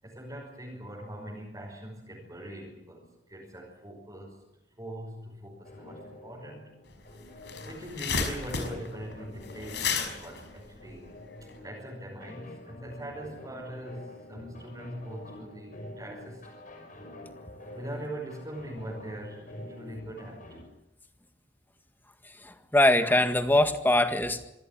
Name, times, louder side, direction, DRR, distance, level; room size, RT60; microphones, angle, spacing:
voice 1, 0.0-4.4 4.8-6.7 7.6-16.6 17.7-20.6, right 1 dB, 20° right, -2 dB, 5.5 m, -42 dB
sound 1, 5.6-20.6, left 1 dB, 50° left, 5.9 m, -47 dB
sound 2, 6.9-7.0 7.2-11.5, left 5 dB, 70° left, 5.4 m, -33 dB
voice 2, 22.4-24.5, left 1 dB, 10° left, 7 dB, 1.8 m, -23 dB
26.0 x 15.5 x 8.7 m, 0.91 s
head